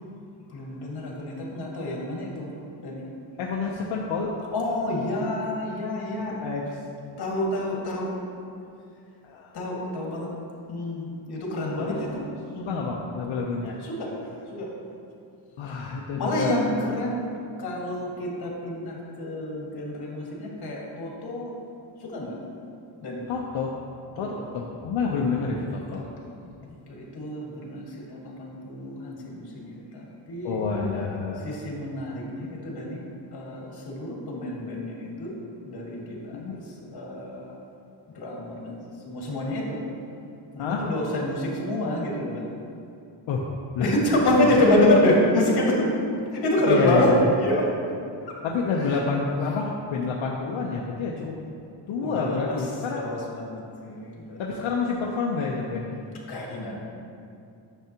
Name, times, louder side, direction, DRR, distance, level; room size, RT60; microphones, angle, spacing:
voice 1, 0.5-2.5 2.8-3.0 4.5-6.4 7.2-8.1 9.5-10.3 10.7-12.2 12.5-12.8 13.7-14.1 14.5-14.7 16.2-17.2 17.6-21.6 22.0-22.3 23.0-23.2 24.2-24.4 25.1-25.6 25.9-30.6 31.4-33.0 33.3-35.3 35.6-37.6 38.1-39.8 40.5-42.5 43.8-45.9 46.3-47.1 47.4-47.7 48.3-48.4 48.8-49.0 52.0-52.6 52.9-54.7 56.3-56.8, left 1 dB, 55° left, -3 dB, 2.0 m, -27 dB
voice 2, 3.4-4.3 6.3-6.6 9.2-9.5 11.8-12.2 12.6-13.8 15.6-16.6 23.3-23.7 24.2-26.0 30.4-31.5 36.3-36.6 40.6-40.8 43.3-43.5 43.7-43.9 44.5-44.6 46.7-47.3 48.4-51.3 51.9-53.0 54.4-56.0, left 5 dB, 80° left, -2 dB, 0.9 m, -28 dB
10.0 x 7.1 x 2.9 m, 2.5 s
cardioid pair, 135°, 46 cm